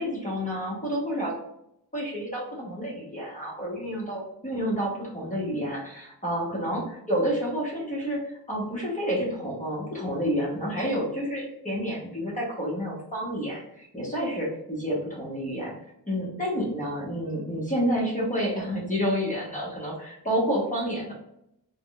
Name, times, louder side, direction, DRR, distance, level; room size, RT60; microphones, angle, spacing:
voice 1, 0.0-1.3 1.9-15.7 16.1-21.1, equal, 20° left, -4 dB, 1.0 m, -29 dB
3.5 x 2.2 x 2.3 m, 0.81 s
wide cardioid pair, 80°, 43 cm